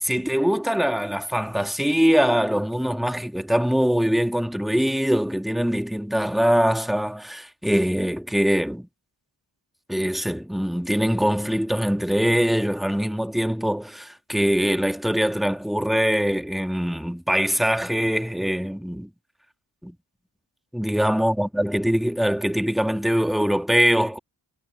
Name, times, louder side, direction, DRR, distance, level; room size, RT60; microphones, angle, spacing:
voice 1, 0.0-8.9 9.9-19.1 19.8-19.9 20.7-24.2, equal, ahead, 1.5 m, -23 dB
wide cardioid pair, 90°, 45 cm